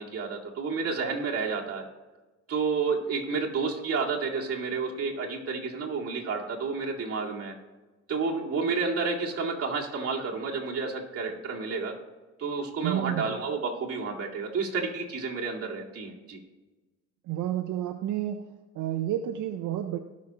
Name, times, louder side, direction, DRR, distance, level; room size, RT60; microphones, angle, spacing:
voice 1, 0.0-1.8 2.5-7.5 8.1-11.9 12.4-16.4, right 4 dB, 50° right, -2 dB, 2.1 m, -30 dB
voice 2, 12.8-13.3 17.3-18.5 18.7-20.0, right 12 dB, 80° right, 6 dB, 0.6 m, -30 dB
17.5 x 6.1 x 2.9 m, 1.2 s
cardioid pair, 90°, 30 cm